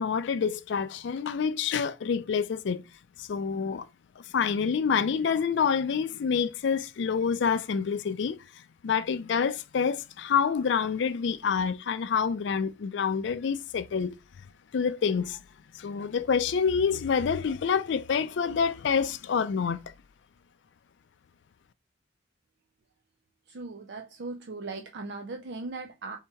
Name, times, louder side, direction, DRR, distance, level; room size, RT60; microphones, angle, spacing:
voice 1, 0.0-2.8 3.2-3.9 4.3-8.4 8.8-14.2 14.7-15.4 15.7-19.8, left 6 dB, 65° left, 0.4 m, -27 dB
voice 2, 23.5-26.2, right 3 dB, 60° right, 0.5 m, -38 dB
3.5 x 2.8 x 4.3 m
head